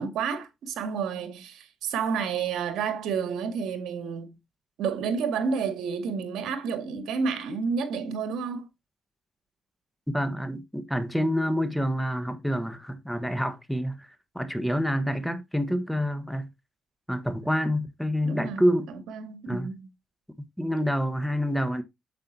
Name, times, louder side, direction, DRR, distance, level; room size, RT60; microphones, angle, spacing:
voice 1, 0.0-4.4 4.8-8.7 18.2-18.6 19.1-19.9, right 6 dB, 80° right, 2.0 m, -30 dB
voice 2, 10.1-16.5 17.1-18.9 19.5-19.7 20.6-21.8, equal, ahead, 1.3 m, -27 dB
9.1 x 7.7 x 2.8 m
cardioid pair, 90°, 0 cm